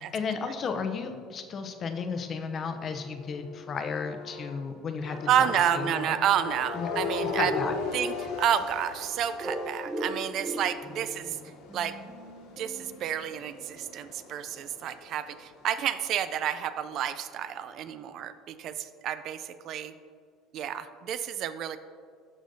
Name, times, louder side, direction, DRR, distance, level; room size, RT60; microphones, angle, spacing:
voice 1, 0.1-6.2 6.7-6.9 7.3-7.8, left 5 dB, 40° left, 7 dB, 0.6 m, -34 dB
sound 1, 1.8-4.6 5.0-15.5, left 4 dB, 85° left, 1.0 m, -38 dB
voice 2, 5.3-7.5 7.9-11.4 11.7-12.1 12.6-19.9 20.5-21.8, right 9 dB, 55° right, 12 dB, 0.3 m, -30 dB
sound 2, 9.4-14.0, right 1 dB, 20° right, 0.8 m, -39 dB
13.0 x 5.0 x 2.6 m, 2.2 s
cardioid pair, 120°, 0 cm